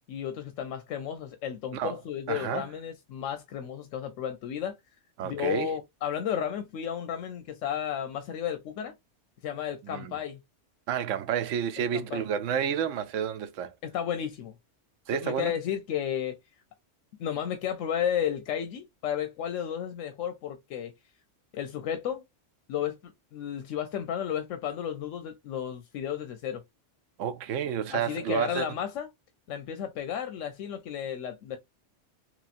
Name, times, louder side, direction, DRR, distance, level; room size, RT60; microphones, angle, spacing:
voice 1, 0.1-4.8 5.2-8.9 9.4-10.4 11.9-12.2 13.8-14.5 15.1-16.4 17.2-20.9 21.5-22.2 22.7-26.6 27.9-29.1 29.5-31.6, left 9 dB, 90° left, 1.0 m, -33 dB
voice 2, 2.3-2.7 5.2-5.7 9.8-10.2 10.9-13.7 15.1-15.5 27.2-28.6, right 9 dB, 85° right, 0.9 m, -30 dB
3.1 x 2.9 x 2.4 m
omnidirectional pair, 1.3 m